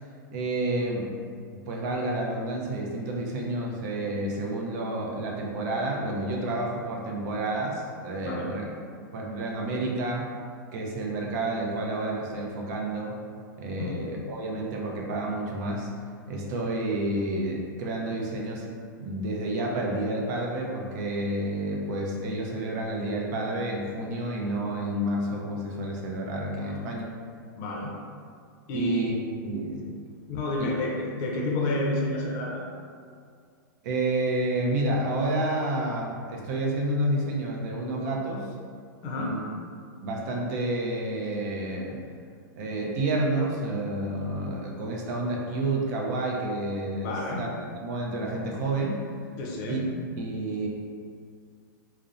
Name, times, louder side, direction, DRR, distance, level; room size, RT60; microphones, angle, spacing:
voice 1, 0.3-1.1 1.5-8.7 9.1-10.3 10.7-13.2 13.6-15.9 16.3-18.7 19.0-27.0 28.7-29.1 29.4-29.8 30.6-30.7 33.8-38.5 39.2-39.4 40.0-42.0 42.6-47.5 47.8-49.0 49.7-49.8 50.2-50.7, right 1 dB, 55° right, -1 dB, 0.5 m, -30 dB
voice 2, 27.6-27.9 28.7-29.1 30.3-32.6 39.0-39.4 47.0-47.4 49.4-49.8, left 1 dB, 45° left, -2 dB, 0.5 m, -30 dB
2.7 x 2.0 x 2.4 m, 2.1 s
hypercardioid pair, 130°, 11 cm